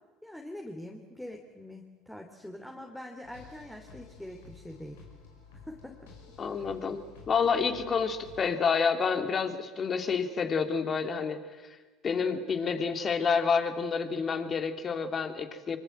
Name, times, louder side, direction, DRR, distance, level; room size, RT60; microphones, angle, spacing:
voice 1, 0.2-5.0 5.7-6.1, left 1 dB, 5° left, 2 dB, 3.2 m, -44 dB
sound 1, 3.2-8.5, left 5 dB, 80° left, 5.6 m, -52 dB
voice 2, 6.4-11.4 12.0-15.8, left 5 dB, 35° left, 8 dB, 2.9 m, -29 dB
25.0 x 25.0 x 7.9 m, 1.2 s
hypercardioid pair, 70°, 0 cm